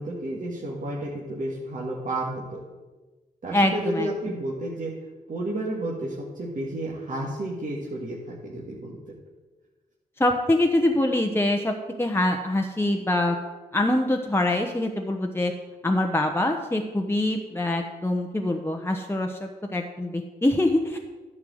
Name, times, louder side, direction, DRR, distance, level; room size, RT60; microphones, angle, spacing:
voice 1, 0.0-2.6 3.4-4.9 5.3-9.1, right 1 dB, 50° right, -4 dB, 1.9 m, -31 dB
voice 2, 3.5-4.1 10.2-13.4 13.7-15.5 15.8-21.0, left 1 dB, 15° left, 2 dB, 1.0 m, -24 dB
10.5 x 4.7 x 7.8 m, 1.3 s
supercardioid pair, 45°, 17 cm